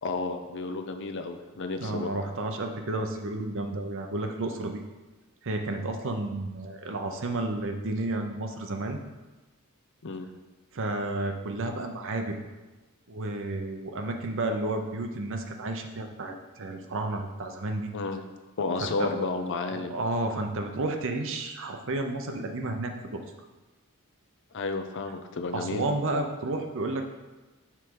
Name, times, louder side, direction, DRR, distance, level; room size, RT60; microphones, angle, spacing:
voice 1, 0.0-2.1 10.0-10.3 17.9-18.2 18.6-20.0 24.5-25.9, left 3 dB, 55° left, 6 dB, 0.6 m, -32 dB
voice 2, 1.8-4.8 5.4-9.0 10.7-12.4 13.1-17.9 18.8-19.1 19.7-23.2 25.5-27.0, right 2 dB, 60° right, 4 dB, 0.7 m, -31 dB
6.0 x 5.0 x 4.7 m, 1.2 s
head